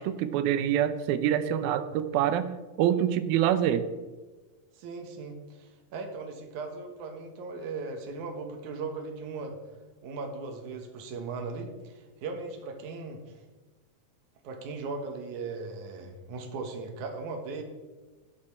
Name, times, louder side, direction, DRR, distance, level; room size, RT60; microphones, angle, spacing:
voice 1, 0.0-2.5 2.8-3.9, right 10 dB, 90° right, 11 dB, 2.6 m, -26 dB
voice 2, 4.8-9.6 10.0-13.4 14.4-17.6, right 4 dB, 65° right, 3 dB, 2.6 m, -38 dB
16.5 x 6.0 x 4.3 m, 1.3 s
omnidirectional pair, 4.1 m